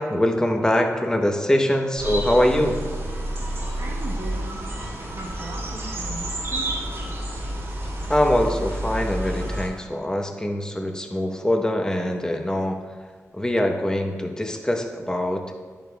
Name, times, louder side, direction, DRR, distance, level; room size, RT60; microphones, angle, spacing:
voice 1, 0.0-2.8 8.1-12.8 13.3-15.4, left 1 dB, 10° left, 4 dB, 0.9 m, -23 dB
sound 1, 2.0-9.7, right 1 dB, 60° right, 2.4 m, -29 dB
voice 2, 3.8-4.7 5.1-6.8, right 3 dB, 90° right, -2 dB, 0.8 m, -38 dB
10.5 x 9.0 x 2.3 m, 1.5 s
wide cardioid pair, 90°, 6 cm